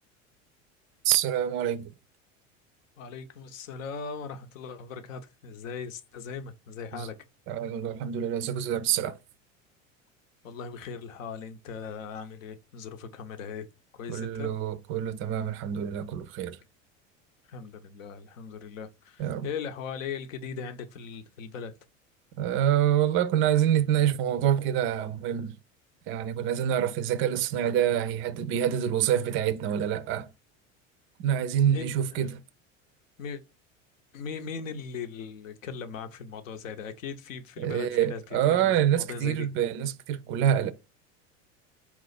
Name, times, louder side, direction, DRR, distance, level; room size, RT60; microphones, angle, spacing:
voice 1, 1.0-1.9 6.9-7.1 7.5-9.2 14.1-16.6 19.2-19.5 22.4-25.6 26.1-30.3 31.2-32.4 37.6-40.7, right 10 dB, 35° right, 0.4 m, -26 dB
voice 2, 3.0-7.1 10.4-13.7 14.0-14.5 17.5-21.7 31.6-32.3 33.2-33.4 34.1-38.2 38.5-39.5, left 6 dB, 75° left, 0.7 m, -39 dB
4.1 x 2.4 x 4.0 m
hypercardioid pair, 85°, 39 cm